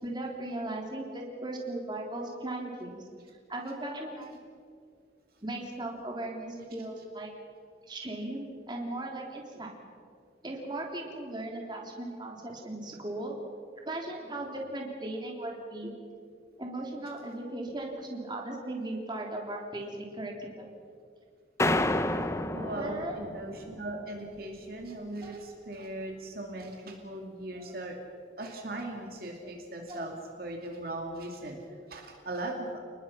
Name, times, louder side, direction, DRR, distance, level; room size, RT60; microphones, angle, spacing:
voice 1, 0.0-3.0 3.5-4.4 5.4-7.3 7.9-9.7 10.4-13.4 13.9-15.9 16.6-20.7 22.7-23.2 25.2-25.3 27.6-27.7 29.4-29.5 29.9-30.1 31.7-31.8, right 1 dB, 25° right, 0 dB, 3.4 m, -37 dB
sound 1, 21.6-24.0, left 1 dB, 15° left, 0.8 m, -30 dB
voice 2, 22.5-28.0 28.4-31.6 31.9-32.8, right 1 dB, 55° right, 1 dB, 2.7 m, -39 dB
30.0 x 20.0 x 5.8 m, 2.3 s
head